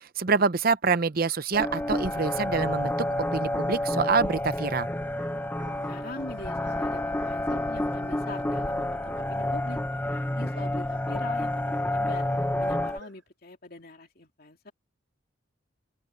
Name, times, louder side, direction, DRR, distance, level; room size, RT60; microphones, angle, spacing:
voice 1, 0.0-2.9 3.3-4.9, right 4 dB, 50° right, 0.8 m, -26 dB
Bark, 1.0-1.9 2.8-4.4 5.1-13.3, right 3 dB, 70° right, 7.3 m, -54 dB
sound 1, 1.5-13.0, left 1 dB, 10° left, 0.9 m, -29 dB
voice 2, 5.8-11.5 11.8-12.3 12.6-14.7, left 2 dB, 50° left, 2.8 m, -43 dB
open air
head